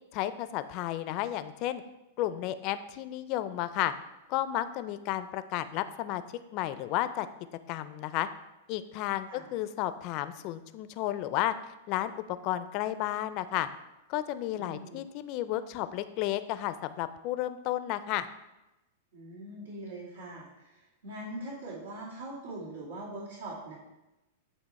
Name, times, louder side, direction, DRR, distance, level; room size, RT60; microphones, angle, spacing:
voice 1, 0.1-1.8 2.2-3.9 4.3-6.2 6.5-7.3 7.7-8.3 8.7-11.5 11.9-13.7 14.1-18.3, left 13 dB, 45° left, 12 dB, 0.4 m, -32 dB
voice 2, 14.6-15.0 19.1-23.7, right 1 dB, 90° right, -6 dB, 2.2 m, -42 dB
8.3 x 2.8 x 4.1 m, 0.98 s
hypercardioid pair, 130°, 0 cm